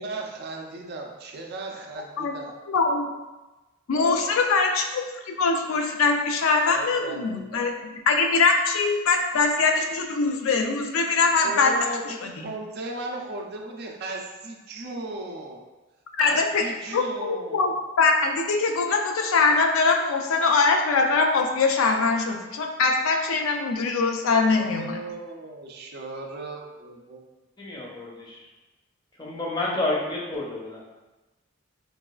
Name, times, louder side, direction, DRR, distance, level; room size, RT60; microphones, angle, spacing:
voice 1, 0.0-2.5 3.9-4.3 6.7-7.6 11.4-15.6 16.2-17.7 24.5-27.4, right 2 dB, 50° right, 2 dB, 0.4 m, -37 dB
voice 2, 2.7-3.1 3.9-11.7 12.2-12.5 16.2-16.6 16.9-25.0, left 4 dB, 85° left, 3 dB, 0.4 m, -22 dB
voice 3, 27.6-28.4 29.2-30.8, left 2 dB, 20° left, -4 dB, 0.6 m, -29 dB
3.9 x 2.3 x 2.2 m, 1.1 s
head